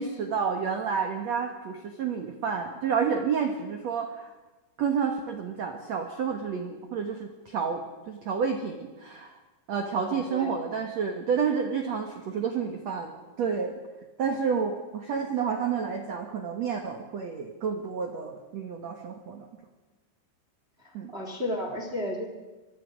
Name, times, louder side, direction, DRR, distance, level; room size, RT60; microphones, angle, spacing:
voice 1, 0.0-4.3 4.8-9.3 9.7-13.1 13.4-13.8 14.2-19.5 20.9-21.1, right 6 dB, 85° right, 4 dB, 1.5 m, -30 dB
voice 2, 9.9-10.6 20.8-22.3, left 1 dB, 55° right, 3 dB, 0.6 m, -33 dB
25.0 x 23.0 x 5.2 m, 1.2 s
omnidirectional pair, 5.3 m